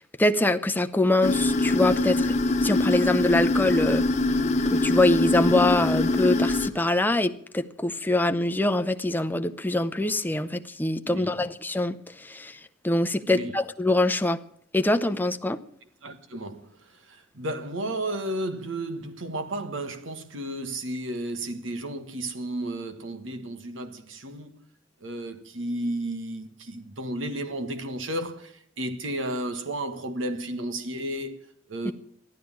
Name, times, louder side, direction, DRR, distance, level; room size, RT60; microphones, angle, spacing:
voice 1, 0.0-2.3 2.6-4.0 4.7-14.4 14.7-15.6 31.8-31.9, left 2 dB, 10° left, 0.7 m, -24 dB
sound 1, 1.2-6.7, left 2 dB, 35° left, 1.2 m, -23 dB
voice 2, 11.1-11.4 13.3-13.6 16.0-24.6 25.0-31.9, right 1 dB, 75° right, 1.5 m, -33 dB
14.5 x 12.0 x 7.3 m
head